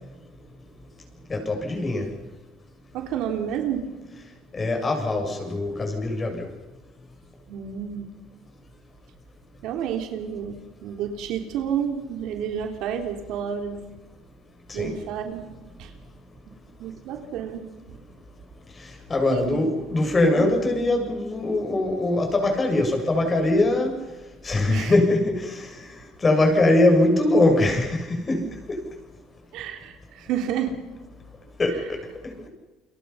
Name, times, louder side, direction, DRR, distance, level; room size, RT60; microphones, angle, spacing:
voice 1, 1.3-2.1 4.5-6.5 14.7-14.9 19.1-23.9 24.4-25.7 26.2-28.4 28.7-28.8 31.6-32.0, left 2 dB, 25° left, 3 dB, 7.2 m, -22 dB
voice 2, 2.9-3.9 7.5-8.1 9.6-13.8 14.7-15.9 16.8-17.7 19.2-19.7 20.3-20.5 24.7-25.0 29.5-30.8, right 8 dB, 70° right, 5 dB, 3.4 m, -30 dB
29.0 x 23.0 x 5.8 m, 1.1 s
cardioid pair, 110°, 0 cm